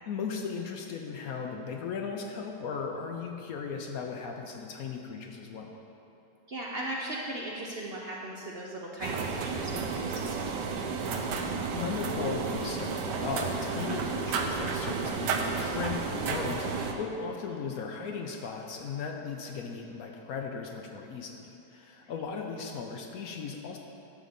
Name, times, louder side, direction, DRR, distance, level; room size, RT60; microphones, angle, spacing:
voice 1, 0.1-5.7 11.7-23.8, left 5 dB, 65° left, 2 dB, 1.0 m, -37 dB
voice 2, 6.5-10.6 22.0-22.1, right 1 dB, 50° right, -3 dB, 0.8 m, -38 dB
sound 1, 9.0-16.9, right 5 dB, 85° right, 1.3 m, -32 dB
11.5 x 3.9 x 6.8 m, 2.9 s
omnidirectional pair, 1.8 m